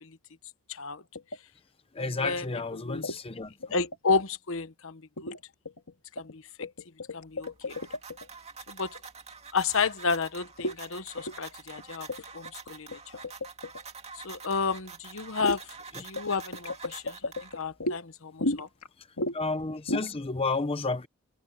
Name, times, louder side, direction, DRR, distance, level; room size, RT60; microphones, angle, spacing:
voice 1, 0.7-1.0 2.1-3.0 3.7-5.3 6.2-6.7 7.1-7.8 8.7-9.0 9.5-12.1 12.3-13.3 14.1-15.6 16.0-18.7, left 4 dB, 65° left, 1.2 m, -32 dB
sound 1, 1.2-1.4 2.9-3.2 3.6-4.0 5.2-5.4 5.7-6.4 6.6-8.3 10.6-10.8 11.2-11.5 11.8-11.9 12.1-13.8 15.4-15.6 16.2-18.0 18.4-18.9 19.2-19.4 19.7-20.1, left 1 dB, 80° left, 2.1 m, -33 dB
voice 2, 2.0-3.5 19.3-21.1, left 3 dB, 25° left, 0.7 m, -31 dB
sound 2, 7.2-17.8, right 5 dB, 30° right, 2.2 m, -47 dB
head